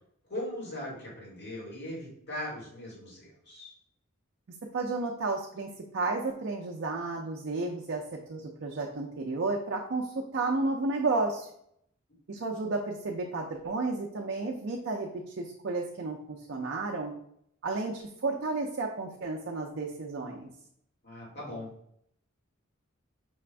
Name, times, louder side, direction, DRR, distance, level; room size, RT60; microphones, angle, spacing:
voice 1, 0.3-3.7 21.0-21.7, left 1 dB, 50° left, -4 dB, 1.7 m, -39 dB
voice 2, 4.7-5.7 5.9-8.0 8.3-11.5 12.3-17.1 17.6-20.5, right 3 dB, 55° right, 0 dB, 0.5 m, -32 dB
5.5 x 2.5 x 3.3 m, 0.70 s
head